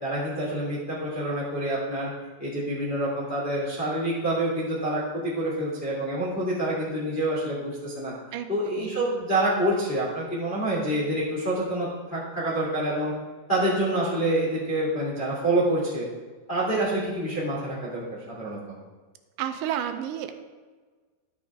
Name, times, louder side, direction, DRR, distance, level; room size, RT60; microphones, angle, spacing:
voice 1, 0.0-2.1 2.4-8.1 8.5-13.1 13.5-16.0 16.5-18.0 18.3-18.6, right 1 dB, 40° left, -8 dB, 0.7 m, -27 dB
voice 2, 8.3-9.0 19.4-20.3, right 10 dB, 85° right, 8 dB, 2.8 m, -31 dB
12.5 x 6.1 x 3.6 m, 1.4 s
omnidirectional pair, 5.0 m